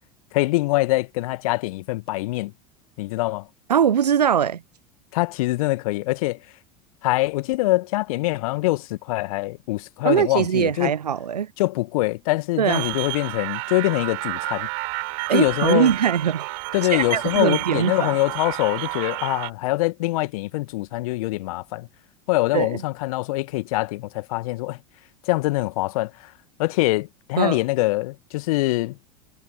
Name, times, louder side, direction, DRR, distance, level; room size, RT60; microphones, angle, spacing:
voice 1, 0.3-2.5 3.0-3.5 5.1-6.4 7.0-10.9 11.6-14.7 15.3-15.9 16.7-21.9 22.3-24.8 25.3-26.3 26.6-29.0, left 20 dB, 55° left, 1.9 m, -24 dB
voice 2, 3.7-4.6 10.0-11.5 12.6-13.0 15.3-16.5 16.9-18.1 22.5-22.8 27.4-27.6, right 8 dB, 75° right, 0.9 m, -21 dB
sound 1, 12.7-19.5, right 35 dB, 55° right, 4.0 m, -30 dB
figure-of-eight pair, 80°, 21 cm